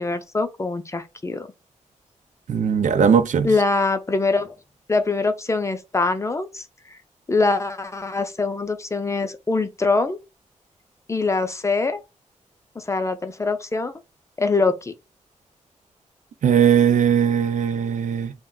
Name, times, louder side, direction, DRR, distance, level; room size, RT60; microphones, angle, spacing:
voice 1, 0.0-1.5 3.4-4.6 4.9-6.6 7.3-10.2 11.1-12.0 12.8-13.9 14.4-14.9, left 3 dB, 25° left, 0.3 m, -23 dB
voice 2, 2.5-3.5 16.4-18.3, right 7 dB, 85° right, 0.4 m, -19 dB
2.3 x 2.1 x 3.6 m
wide cardioid pair, 125°, 13 cm